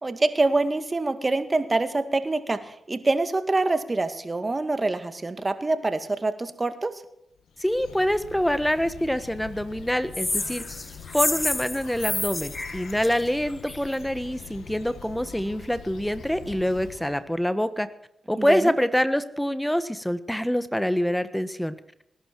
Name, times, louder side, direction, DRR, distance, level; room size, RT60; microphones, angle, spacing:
voice 1, 0.0-7.0 18.4-18.7, right 2 dB, 35° right, 9 dB, 2.0 m, -25 dB
Bird, 7.4-17.4, left 6 dB, 85° left, 1.7 m, -44 dB
voice 2, 7.6-10.6 11.1-17.9 18.3-21.7, equal, 5° left, 13 dB, 1.3 m, -25 dB
sound 1, 10.1-13.9, left 2 dB, 25° left, 1.2 m, -29 dB
20.0 x 11.5 x 4.7 m, 0.79 s
supercardioid pair, 50°, 0 cm